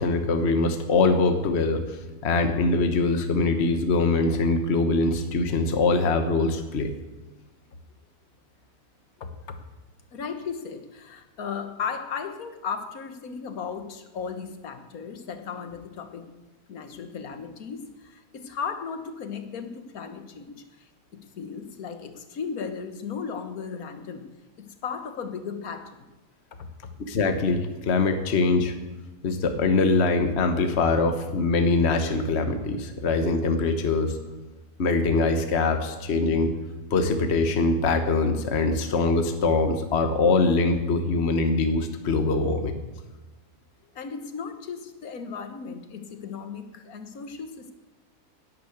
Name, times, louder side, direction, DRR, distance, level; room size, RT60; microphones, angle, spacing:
voice 1, 0.0-2.0 2.2-6.9 27.1-28.7 29.2-34.2 34.8-36.5 36.9-42.8, left 3 dB, 45° left, 7 dB, 1.4 m, -23 dB
voice 2, 9.2-9.6 10.1-16.3 16.7-24.3 24.6-26.0 26.5-26.9 43.9-47.7, left 6 dB, 70° left, 8 dB, 1.7 m, -36 dB
11.0 x 10.5 x 8.0 m, 1.1 s
omnidirectional pair, 1.6 m